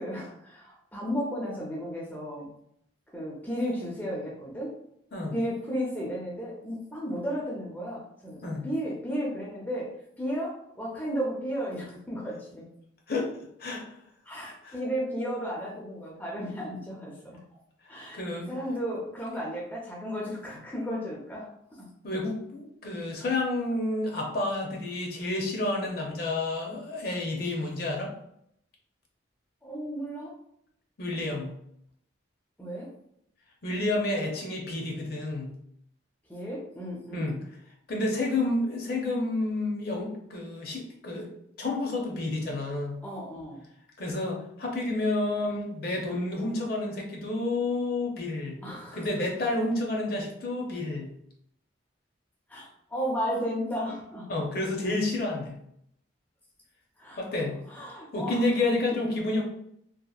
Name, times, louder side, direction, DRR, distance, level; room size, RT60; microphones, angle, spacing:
voice 1, 0.0-2.5 3.1-4.7 5.3-9.9 10.2-12.7 14.3-17.4 17.9-18.2 18.5-21.5 21.8-21.9 29.6-30.3 32.6-32.9 36.3-37.3 43.0-43.6 48.6-49.0 52.5-54.3 57.0-57.2 57.7-58.4 58.7-58.8, equal, 10° left, -4 dB, 0.4 m, -34 dB
voice 2, 18.1-18.5 22.0-28.1 31.0-31.5 33.6-35.5 37.1-37.4 37.9-41.3 41.6-43.0 44.0-48.6 48.9-51.1 54.3-55.5 57.2-57.6 58.1-59.4, left 2 dB, 50° left, 0 dB, 0.6 m, -30 dB
2.8 x 2.4 x 2.3 m, 0.73 s
head